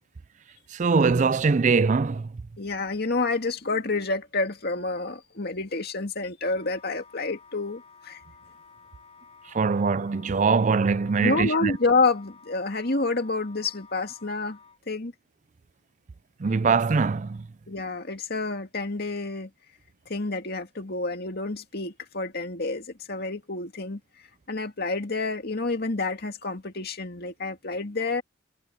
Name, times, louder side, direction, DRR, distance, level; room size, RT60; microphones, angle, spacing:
voice 1, 0.8-2.2 9.5-11.7 16.4-17.4, right 4 dB, 40° right, 0.4 m, -22 dB
voice 2, 2.6-8.2 11.2-14.6 14.9-15.1 17.7-19.5 20.1-24.0 24.5-28.2, left 3 dB, 50° left, 2.1 m, -28 dB
Wind instrument woodwind instrument, 6.5-14.8, left 5 dB, 30° left, 7.2 m, -53 dB
head